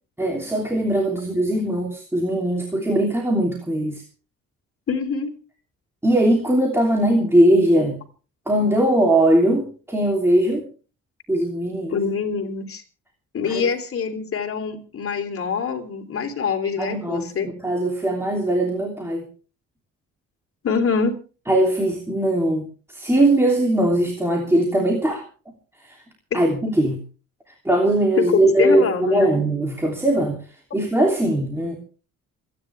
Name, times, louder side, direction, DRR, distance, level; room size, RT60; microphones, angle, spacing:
voice 1, 0.2-4.0 6.0-8.0 8.5-10.6 11.3-12.0 13.5-13.7 16.8-19.3 21.5-25.2 25.8-26.0 26.3-27.0 27.5-30.4 30.7-31.8, right 1 dB, 10° right, 1 dB, 3.0 m, -20 dB
voice 2, 4.9-5.3 11.9-12.8 13.3-17.5 20.6-21.1 26.3-26.4 28.3-29.4, left 5 dB, 45° left, 5 dB, 3.5 m, -25 dB
28.0 x 10.5 x 3.5 m, 0.37 s
cardioid pair, 125°, 31 cm